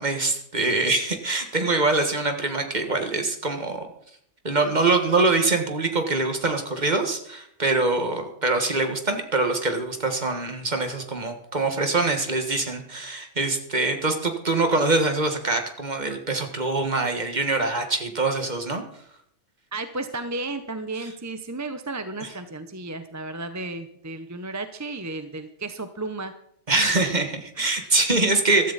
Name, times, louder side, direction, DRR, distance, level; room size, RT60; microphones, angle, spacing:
voice 1, 0.0-3.9 4.4-18.8 21.0-21.1 22.2-22.3 26.7-28.7, right 3 dB, 35° right, 6 dB, 1.7 m, -24 dB
voice 2, 19.7-26.3, right 2 dB, 15° right, 9 dB, 0.7 m, -33 dB
15.5 x 13.0 x 4.1 m, 0.69 s
omnidirectional pair, 1.3 m